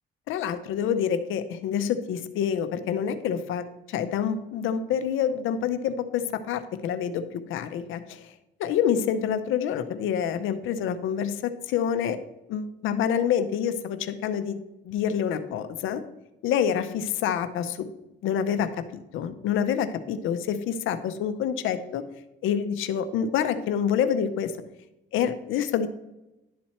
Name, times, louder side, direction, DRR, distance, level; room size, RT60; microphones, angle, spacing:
voice 1, 0.3-8.3 8.6-12.2 12.5-14.6 14.8-16.0 16.4-17.9 18.2-22.0 22.4-24.5 25.1-25.9, left 8 dB, 85° left, 10 dB, 0.7 m, -27 dB
11.0 x 4.3 x 4.3 m, 0.94 s
cardioid pair, 90°, 20 cm